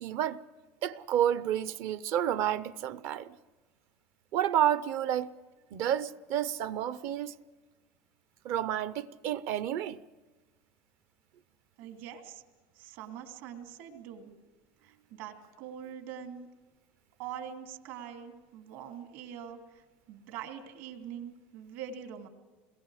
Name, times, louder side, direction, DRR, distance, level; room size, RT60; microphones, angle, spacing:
voice 1, 0.0-0.4 0.8-3.3 4.3-5.3 5.7-7.3 8.4-10.0, right 10 dB, 45° right, 0.6 m, -30 dB
voice 2, 11.8-12.4 12.8-14.4 14.8-16.5 17.2-22.3, right 8 dB, 65° right, 2.8 m, -44 dB
28.5 x 21.5 x 4.9 m
cardioid pair, 175°, 6 cm